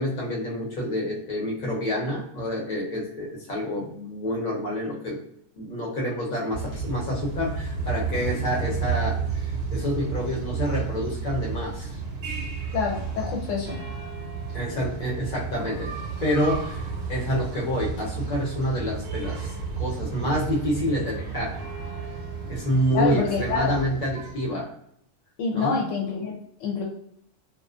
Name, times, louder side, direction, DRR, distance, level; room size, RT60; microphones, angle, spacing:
voice 1, 0.0-5.2 5.6-12.0 14.5-15.9 16.2-19.5 19.8-21.5 22.5-24.7 25.5-25.7, equal, 45° left, -2 dB, 0.8 m, -28 dB
sound 1, 6.5-24.5, right 5 dB, 60° right, 0.9 m, -32 dB
voice 2, 12.7-13.8 22.9-23.8 25.4-26.8, left 5 dB, 75° left, 0 dB, 0.9 m, -27 dB
2.4 x 2.4 x 2.4 m, 0.72 s
omnidirectional pair, 1.3 m